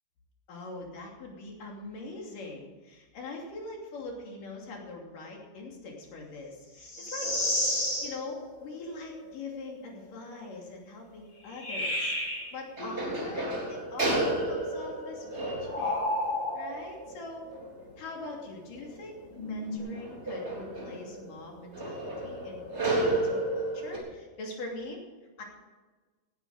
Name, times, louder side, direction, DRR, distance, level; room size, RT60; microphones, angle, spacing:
voice 1, 0.5-7.4 8.0-16.0 16.5-17.5 18.0-25.0 25.4-25.5, left 3 dB, 65° left, 0 dB, 4.4 m, -43 dB
sound 1, 6.8-8.1 11.5-12.5 15.7-16.9 19.4-19.8, left 1 dB, 35° left, 5.8 m, -31 dB
sound 2, 7.2-10.4 10.9-11.0 12.3-12.4 12.8-24.0, right 1 dB, 20° right, 3.6 m, -34 dB
18.0 x 10.5 x 4.8 m, 1.3 s
omnidirectional pair, 4.0 m